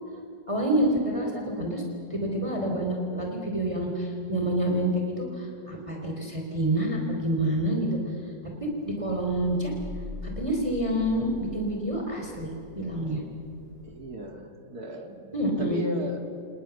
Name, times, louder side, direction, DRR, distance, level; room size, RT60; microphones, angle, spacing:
voice 1, 0.5-1.8 2.1-8.1 8.6-9.7 10.2-13.2 15.3-15.8, right 1 dB, 15° right, 1 dB, 3.5 m, -28 dB
Thunder / Rain, 8.5-14.2, left 2 dB, 80° right, 7.1 m, -43 dB
voice 2, 13.8-15.3 15.6-16.2, right 1 dB, 55° right, 4 dB, 3.0 m, -36 dB
29.0 x 28.5 x 7.1 m, 2.9 s
omnidirectional pair, 1.9 m